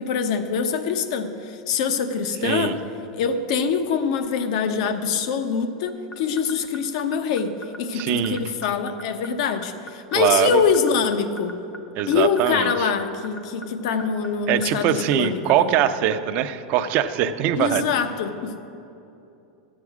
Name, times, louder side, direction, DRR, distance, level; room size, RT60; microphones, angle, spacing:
voice 1, 0.0-2.8 3.1-11.5 12.1-15.7 17.5-18.6, left 6 dB, 65° left, 9 dB, 0.9 m, -24 dB
voice 2, 2.4-2.7 7.9-8.4 10.1-10.6 11.9-12.9 14.5-17.9, right 10 dB, 50° right, 10 dB, 0.6 m, -22 dB
sound 1, 5.9-16.4, left 1 dB, 30° left, 0.9 m, -38 dB
13.0 x 8.4 x 4.9 m, 2.8 s
hypercardioid pair, 115°, 4 cm